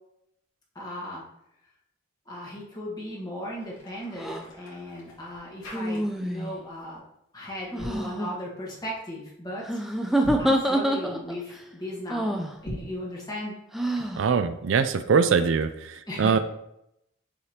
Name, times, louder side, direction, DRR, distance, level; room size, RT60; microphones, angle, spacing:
voice 1, 0.7-1.2 2.2-7.0 7.3-9.8 10.4-13.5 16.1-16.4, left 1 dB, 20° left, -4 dB, 1.5 m, -37 dB
sound 1, 3.5-6.4 6.7-7.0 7.6-8.1 10.1-10.6 12.5-13.0, equal, 75° left, 2.4 m, -40 dB
sound 2, 4.2-4.4 5.7-6.6 7.7-8.3 9.6-11.4 12.1-12.5 13.7-14.2, right 1 dB, ahead, 0.4 m, -26 dB
voice 2, 14.2-16.4, right 5 dB, 70° right, 11 dB, 0.4 m, -23 dB
6.7 x 4.9 x 2.9 m, 0.81 s
head